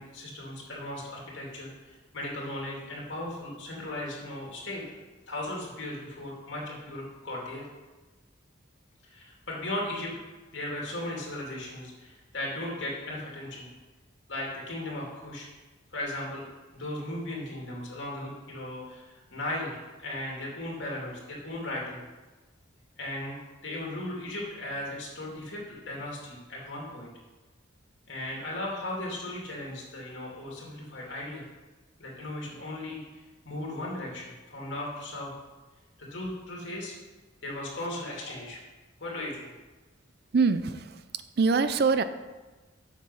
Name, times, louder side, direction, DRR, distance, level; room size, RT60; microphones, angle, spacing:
voice 1, 0.0-4.8 5.3-7.7 9.0-10.1 10.5-13.7 14.3-15.5 15.9-16.4 16.7-22.0 23.0-23.4 23.6-27.1 28.1-31.4 32.0-35.3 36.0-36.9 37.4-38.6 39.0-39.5, left 1 dB, 70° left, -3 dB, 2.5 m, -37 dB
voice 2, 40.3-42.0, right 4 dB, 55° right, 12 dB, 0.4 m, -25 dB
7.4 x 6.6 x 5.5 m, 1.2 s
head